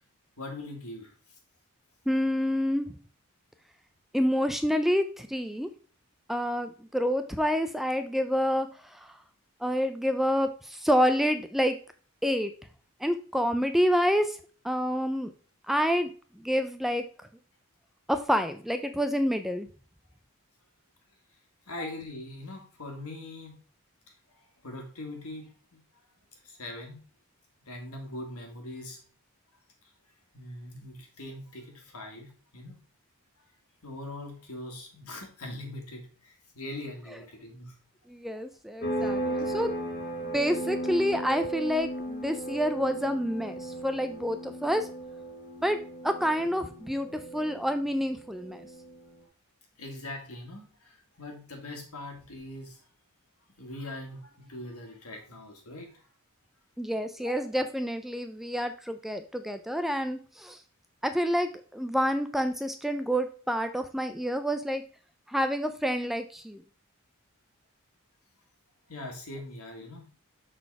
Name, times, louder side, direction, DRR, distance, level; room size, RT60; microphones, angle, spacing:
voice 1, 0.4-1.1 21.7-23.6 24.3-25.8 26.4-27.0 27.6-29.0 30.3-32.8 33.8-37.8 46.4-46.5 49.8-52.8 53.6-56.0 57.3-57.4 68.9-70.1, left 1 dB, 80° left, 2 dB, 2.0 m, -41 dB
voice 2, 2.1-2.9 4.1-5.7 6.3-8.7 8.9-9.1 9.6-11.8 12.2-12.5 13.0-14.4 14.6-15.3 15.7-16.1 16.4-17.0 18.1-19.7 38.1-39.7 40.2-44.9 45.6-45.8 46.0-48.7 56.8-60.6 61.0-64.8 65.3-66.6, equal, ahead, 8 dB, 0.3 m, -28 dB
sound 1, 38.8-49.1, right 1 dB, 45° left, 1.3 m, -36 dB
6.5 x 4.1 x 4.7 m, 0.40 s
head